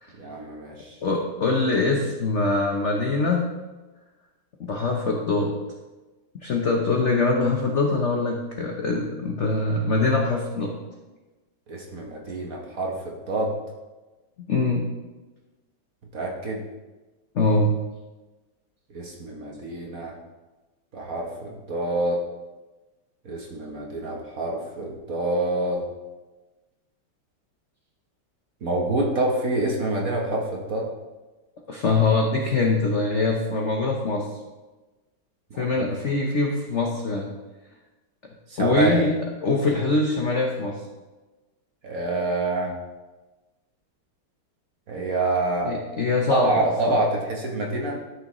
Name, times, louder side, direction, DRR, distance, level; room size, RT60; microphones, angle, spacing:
voice 1, 0.2-1.0 11.7-13.6 16.1-16.6 18.9-20.1 20.9-22.2 23.2-25.8 28.6-30.9 35.5-35.7 38.5-39.0 41.8-42.7 44.9-45.7 46.3-48.0, right 2 dB, 50° right, 0 dB, 1.3 m, -27 dB
voice 2, 1.0-3.5 4.6-5.5 6.3-10.7 14.5-14.9 17.3-17.7 31.7-34.3 35.6-37.3 38.6-39.1 39.4-40.8 45.6-46.5 46.8-47.0, left 3 dB, 60° left, 1 dB, 0.7 m, -23 dB
12.5 x 6.2 x 3.1 m, 1.2 s
omnidirectional pair, 2.3 m